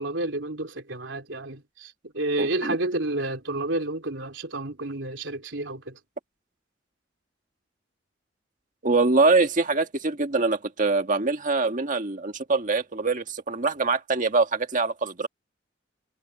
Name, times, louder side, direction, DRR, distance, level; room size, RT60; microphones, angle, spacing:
voice 1, 0.0-6.0, right 2 dB, 70° right, 3.6 m, -30 dB
voice 2, 2.4-2.8 8.8-15.3, right 3 dB, 40° right, 1.7 m, -24 dB
head